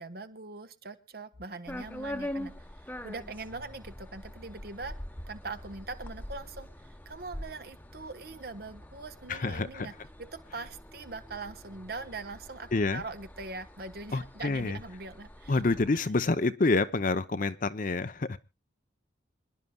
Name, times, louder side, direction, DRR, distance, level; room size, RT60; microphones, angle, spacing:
voice 1, 0.0-5.0 5.3-9.9 10.2-15.6, right 3 dB, 55° right, 10 dB, 1.0 m, -42 dB
sound 1, 1.7-15.9, left 1 dB, 10° left, 0.9 m, -44 dB
voice 2, 9.3-9.9 12.7-13.0 14.1-14.8 15.5-18.4, left 3 dB, 45° left, 12 dB, 0.6 m, -28 dB
26.5 x 11.0 x 2.3 m, 0.26 s
head